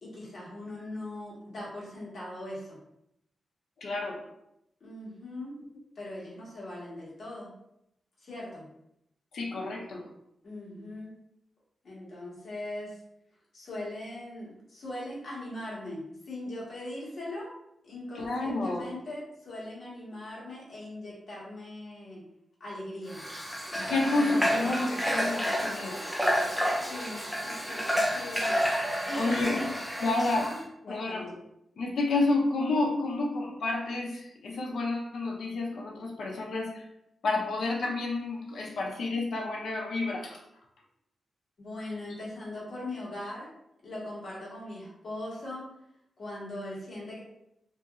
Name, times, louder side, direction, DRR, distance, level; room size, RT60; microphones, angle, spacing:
voice 1, 0.0-2.8 4.8-5.6 5.9-7.5 8.2-8.6 10.4-11.1 11.8-13.0 13.5-17.5 17.8-22.2 22.6-23.2 24.1-24.5 26.7-29.7 30.0-30.6 30.9-31.3 41.6-43.5 43.8-45.6 46.2-47.2, left 1 dB, 55° left, -6 dB, 1.2 m, -40 dB
voice 2, 3.8-4.2 9.3-10.0 18.1-18.8 23.7-26.0 29.1-29.6 30.0-30.5 30.8-31.3 31.8-36.8 37.2-40.4, left 2 dB, 75° left, -1 dB, 0.6 m, -30 dB
Water / Water tap faucet, 23.1-30.6, equal, ahead, 0.5 m, -30 dB
2.9 x 2.6 x 2.3 m, 0.81 s
wide cardioid pair, 110°, 0 cm